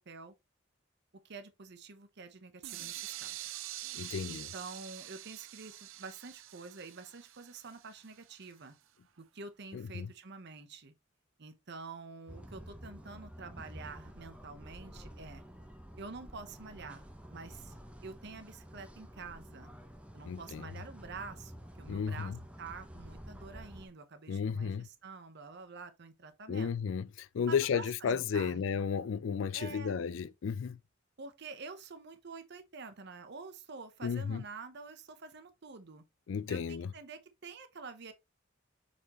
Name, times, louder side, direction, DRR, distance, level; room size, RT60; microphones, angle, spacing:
voice 1, 1.2-3.6 4.3-8.7 9.2-10.9 11.4-15.4 16.0-19.7 20.1-26.7 27.5-28.9 29.5-30.0 31.2-36.0 36.5-38.1, right 4 dB, 55° right, 0.8 m, -48 dB
sound 1, 2.6-8.4, right 14 dB, 80° right, 0.5 m, -45 dB
voice 2, 3.9-4.5 9.7-10.1 20.2-20.7 21.9-22.4 24.3-24.9 26.5-30.8 34.0-34.4 36.3-36.9, left 6 dB, 70° left, 0.4 m, -33 dB
sound 2, 12.3-23.9, equal, 5° right, 0.9 m, -50 dB
7.3 x 4.3 x 3.0 m
head